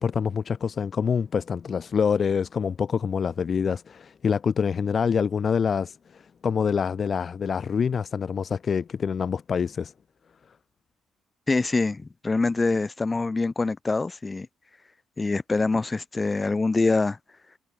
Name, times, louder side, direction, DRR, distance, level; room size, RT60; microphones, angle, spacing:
voice 1, 0.0-9.9, left 6 dB, 50° left, 1.0 m, -26 dB
voice 2, 11.5-14.5 15.2-17.2, left 3 dB, 25° left, 1.7 m, -25 dB
supercardioid pair, 70°, 0 cm